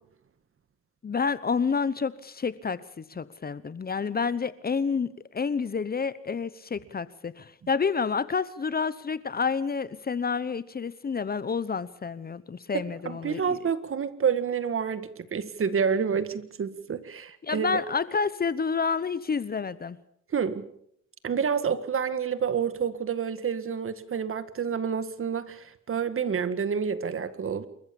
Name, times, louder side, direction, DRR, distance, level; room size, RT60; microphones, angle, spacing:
voice 1, 1.0-13.6 17.4-20.0, left 5 dB, 30° left, 17 dB, 0.9 m, -29 dB
voice 2, 12.7-17.8 20.3-20.7 21.2-27.7, right 6 dB, 45° right, 13 dB, 1.8 m, -29 dB
28.0 x 14.5 x 7.1 m, 0.70 s
cardioid pair, 90°, 30 cm